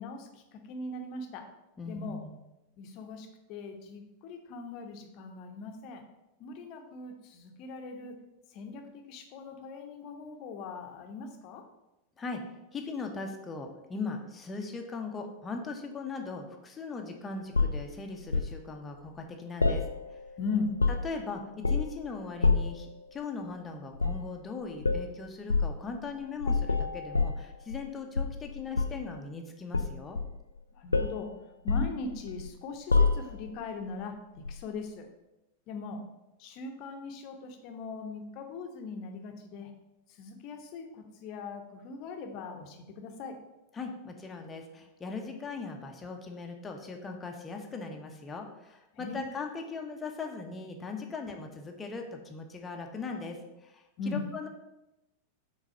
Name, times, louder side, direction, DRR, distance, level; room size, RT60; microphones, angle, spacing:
voice 1, 0.0-1.4 1.8-2.2 2.8-6.0 6.4-8.1 8.5-11.6 20.4-20.7 30.8-31.3 31.6-34.1 34.5-35.1 35.7-36.0 36.4-39.7 40.2-43.3 48.9-49.2 54.0-54.2, left 4 dB, 40° left, 5 dB, 1.0 m, -39 dB
voice 2, 1.8-2.4 12.2-12.4 12.7-19.9 21.0-30.2 43.7-54.5, left 4 dB, 20° left, 3 dB, 1.0 m, -39 dB
sound 1, 17.5-18.6 19.6-20.3 20.6-21.2 21.6-22.0 22.4-22.8 24.0-24.3 24.8-25.1 25.5-25.8 26.4-27.9 28.2-29.1 29.7-30.6 30.9-31.2 31.7-32.5 32.9-33.5 34.5-34.6, left 4 dB, 80° left, 0.4 m, -27 dB
6.2 x 4.1 x 5.4 m, 0.95 s
figure-of-eight pair, 90°, 0 cm